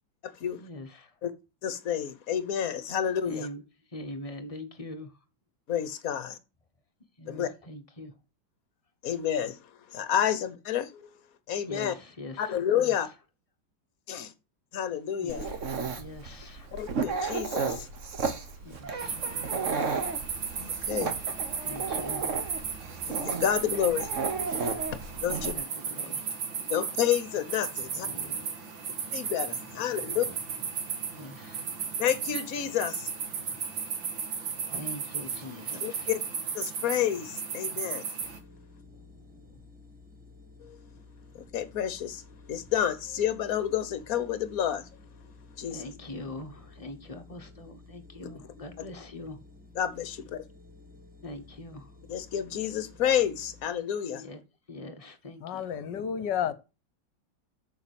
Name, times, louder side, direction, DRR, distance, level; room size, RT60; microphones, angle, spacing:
voice 1, 0.6-1.2 3.2-3.6 3.9-5.2 7.2-8.1 11.7-13.0 15.2-15.6 16.0-16.7 18.5-19.4 21.6-22.7 24.9-25.0 25.2-25.6 25.9-26.3 27.9-28.5 29.9-30.4 31.1-31.7 33.4-33.8 34.7-36.1 38.8-39.7 45.7-49.4 51.2-52.1 54.1-54.4 54.7-56.5, left 1 dB, 20° left, 1.2 m, -44 dB
voice 2, 1.6-3.5 5.7-6.4 7.3-7.5 9.0-9.6 9.9-11.2 11.5-11.9 12.4-13.1 14.1-14.3 14.7-15.5 16.7-17.9 20.6-21.2 23.1-24.1 24.9-25.5 26.7-28.1 29.1-30.3 32.0-33.1 35.8-36.2 36.5-38.0 40.6-40.8 41.3-42.2 42.5-44.9 45.6-45.8 48.8-48.9 49.8-50.4 52.1-54.2, left 9 dB, 50° left, 1.4 m, -29 dB
Dog, 15.3-25.5, right 4 dB, 45° right, 1.5 m, -33 dB
sound 1, 19.0-38.4, right 6 dB, 80° right, 2.4 m, -35 dB
sound 2, 38.2-53.7, left 3 dB, 5° right, 1.3 m, -53 dB
voice 3, 55.4-56.5, left 9 dB, 70° left, 1.4 m, -31 dB
7.1 x 7.0 x 7.0 m
omnidirectional pair, 2.1 m